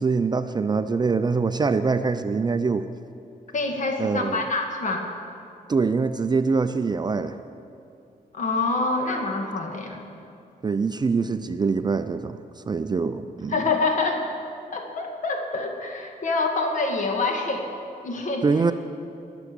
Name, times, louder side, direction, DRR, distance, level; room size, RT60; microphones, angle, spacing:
voice 1, 0.0-2.9 4.0-4.4 5.7-7.4 10.6-13.6 18.4-18.7, right 4 dB, 30° right, 10 dB, 0.4 m, -24 dB
voice 2, 3.5-5.1 8.3-10.0 13.5-14.2 14.7-17.7 18.0-18.4, left 3 dB, 55° left, 3 dB, 1.9 m, -26 dB
20.5 x 7.1 x 6.8 m, 2.6 s
wide cardioid pair, 130°, 15 cm